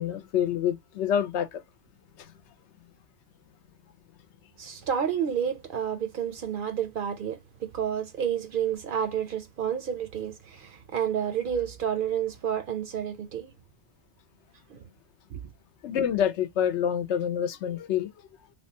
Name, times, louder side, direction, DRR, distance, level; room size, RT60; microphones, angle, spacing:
voice 1, 0.0-1.6 2.2-2.3 15.8-18.1, left 9 dB, 80° left, 0.9 m, -27 dB
voice 2, 4.6-13.5 14.7-14.8 15.3-15.4, right 8 dB, 60° right, 0.6 m, -30 dB
3.5 x 2.2 x 2.7 m
omnidirectional pair, 1.2 m